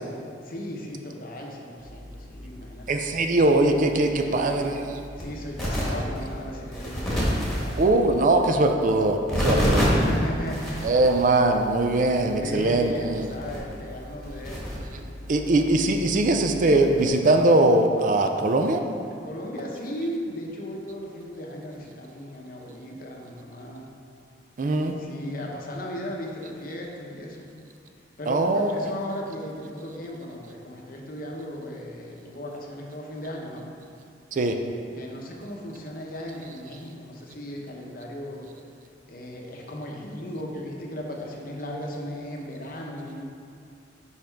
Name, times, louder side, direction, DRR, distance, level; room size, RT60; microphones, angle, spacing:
voice 1, 0.4-3.1 4.2-4.7 5.2-8.0 9.3-10.9 12.4-14.7 15.2-15.3 19.2-23.9 24.9-27.5 28.2-33.7 34.9-38.5 39.1-43.2, equal, 50° left, 0 dB, 0.8 m, -36 dB
sound 1, 1.8-17.1, equal, ahead, 1.4 m, -31 dB
voice 2, 2.9-4.8 7.8-9.2 9.4-9.8 10.8-13.3 15.3-18.8 24.6-24.9 28.3-28.7 34.3-34.5, right 2 dB, 45° right, 5 dB, 0.4 m, -21 dB
5.5 x 5.0 x 4.5 m, 2.5 s
head